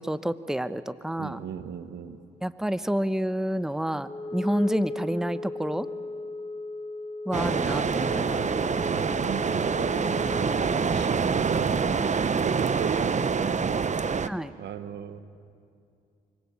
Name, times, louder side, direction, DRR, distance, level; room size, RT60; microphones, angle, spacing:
voice 1, 0.0-1.4 2.4-5.9 7.3-8.4 14.3-14.5, equal, 5° right, 13 dB, 1.0 m, -29 dB
voice 2, 1.2-2.2 8.7-10.5 10.9-13.9 14.6-15.2, right 8 dB, 65° right, 11 dB, 1.5 m, -36 dB
Wind instrument woodwind instrument, 4.0-11.1, left 2 dB, 25° left, 1.6 m, -37 dB
sound 1, 7.3-14.3, right 5 dB, 40° right, 1.1 m, -26 dB
27.0 x 25.0 x 8.7 m, 2.4 s
hypercardioid pair, 50°, 19 cm